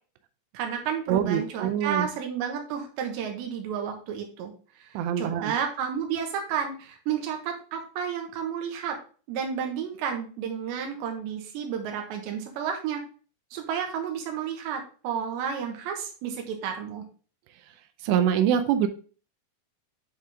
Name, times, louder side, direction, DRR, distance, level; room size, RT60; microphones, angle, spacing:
voice 1, 0.5-4.5 4.8-9.0 9.3-13.0 13.5-17.0, right 7 dB, 70° right, 3 dB, 3.2 m, -31 dB
voice 2, 1.1-2.1 4.9-5.5 18.0-18.9, right 9 dB, 85° right, 9 dB, 2.5 m, -24 dB
10.5 x 3.8 x 3.5 m, 0.38 s
omnidirectional pair, 5.7 m